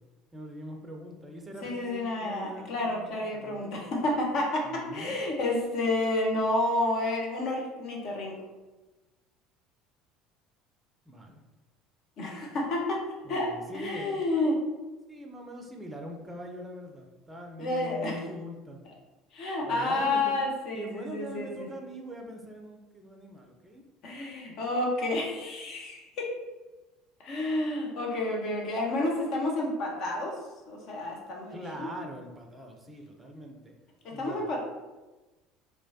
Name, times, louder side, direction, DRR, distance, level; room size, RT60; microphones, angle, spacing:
voice 1, 0.3-3.6 4.7-5.2 11.1-11.4 13.2-14.5 15.1-18.9 19.6-20.4 20.7-23.8 31.5-33.7 34.1-34.4, equal, 15° right, 2 dB, 0.5 m, -43 dB
voice 2, 1.6-8.3 12.2-14.6 17.6-18.1 19.3-21.7 24.0-26.3 27.2-30.4 30.7-31.9 34.0-34.6, left 2 dB, 50° left, -1 dB, 0.6 m, -30 dB
3.0 x 2.1 x 2.7 m, 1.1 s
figure-of-eight pair, 65°, 0 cm